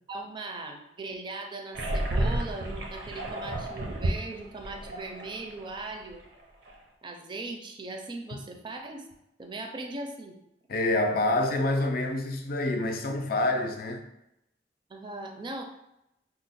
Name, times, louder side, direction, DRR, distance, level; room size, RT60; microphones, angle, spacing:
voice 1, 0.1-6.2 7.0-9.0 9.4-10.4 14.9-15.6, right 2 dB, 25° right, 0.4 m, -39 dB
sound 1, 1.7-5.8 6.1-6.2 6.7-6.8, right 1 dB, 85° right, 0.6 m, -31 dB
voice 2, 10.7-14.0, left 2 dB, 55° left, 0.5 m, -27 dB
2.9 x 2.0 x 4.1 m
head